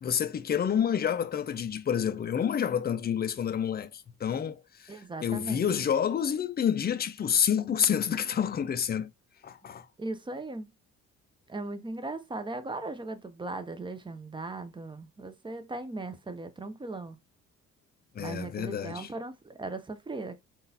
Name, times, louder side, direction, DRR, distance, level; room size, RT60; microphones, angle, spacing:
voice 1, 0.0-4.9 5.2-9.1 9.4-9.9 18.2-19.1, left 8 dB, 35° left, 0.4 m, -28 dB
voice 2, 4.9-5.7 10.0-10.7 11.5-17.2 18.2-20.3, right 2 dB, 15° right, 0.6 m, -38 dB
3.8 x 2.5 x 2.7 m
cardioid pair, 90°, 30 cm